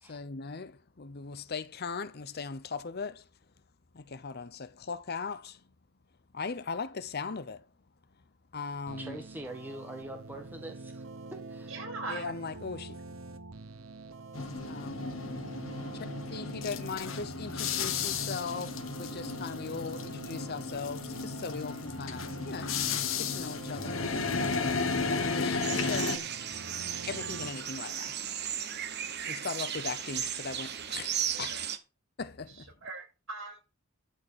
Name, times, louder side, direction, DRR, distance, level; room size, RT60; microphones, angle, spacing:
voice 1, 0.0-3.3 3.9-5.6 6.3-7.7 8.1-8.2 8.5-9.2 12.1-13.0 14.7-15.4 16.3-22.8 23.2-24.2 25.0-26.4 27.1-28.2 29.2-31.7 32.2-32.7, left 5 dB, 50° left, 0.8 m, -39 dB
sound 1, 8.9-27.5, right 3 dB, 85° right, 1.1 m, -45 dB
voice 2, 9.0-11.0 11.3-11.7, right 1 dB, 10° right, 1.5 m, -43 dB
voice 3, 11.7-12.3 31.3-31.7 32.5-33.6, right 3 dB, 70° right, 6.8 m, -41 dB
sound 2, 14.3-26.2, left 4 dB, 70° left, 1.5 m, -34 dB
sound 3, 25.6-31.8, right 9 dB, 55° right, 1.4 m, -35 dB
12.0 x 4.6 x 8.2 m
head